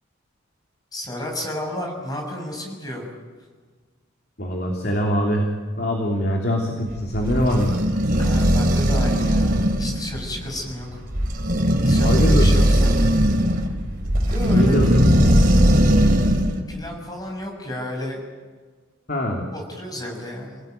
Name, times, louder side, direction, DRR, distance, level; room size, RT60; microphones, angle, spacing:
voice 1, 0.9-3.0 8.2-11.0 11.8-13.1 14.2-15.0 16.7-18.2 19.5-20.6, left 1 dB, 20° left, 1 dB, 6.8 m, -32 dB
voice 2, 4.4-5.5 5.8-7.7 12.0-12.5 14.5-14.9 19.1-19.4, equal, 50° left, 0 dB, 3.1 m, -23 dB
sound 1, 6.9-16.6, equal, 45° right, 3.2 m, -18 dB
29.5 x 18.5 x 9.4 m, 1.5 s
head